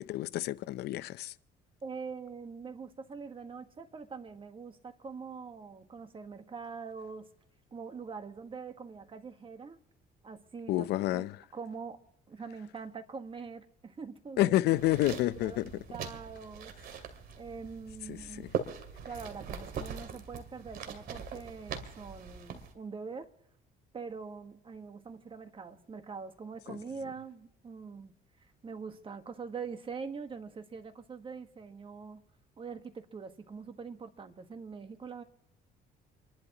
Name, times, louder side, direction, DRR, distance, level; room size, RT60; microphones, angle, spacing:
voice 1, 0.0-1.3 10.7-11.3 14.4-15.6 18.1-18.2 26.7-26.8, left 15 dB, 75° left, 0.6 m, -29 dB
voice 2, 1.8-7.3 7.7-9.8 10.2-11.3 11.5-14.4 15.1-15.6 15.9-16.7 17.4-18.4 19.1-23.3 23.9-28.1 28.4-32.2 32.6-35.2, right 5 dB, 30° right, 1.5 m, -43 dB
sound 1, 14.7-22.7, right 7 dB, 65° right, 2.4 m, -41 dB
28.5 x 12.0 x 3.0 m
cardioid pair, 110°, 17 cm